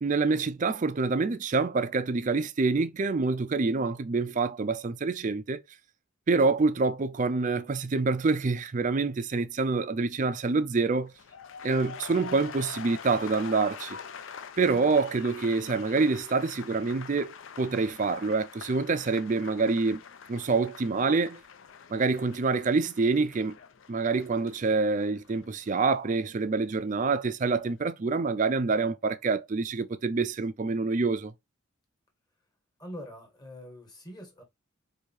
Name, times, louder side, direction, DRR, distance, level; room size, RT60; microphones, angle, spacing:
voice 1, 0.0-5.6 6.3-11.1 11.6-14.0 14.6-20.0 20.3-21.4 21.9-23.6 23.9-31.3, right 4 dB, 35° right, 0.4 m, -26 dB
sound 1, 11.0-27.1 27.4-27.8, left 7 dB, 65° left, 0.4 m, -45 dB
voice 2, 32.8-34.4, equal, 20° left, 1.4 m, -43 dB
4.6 x 2.7 x 2.8 m
head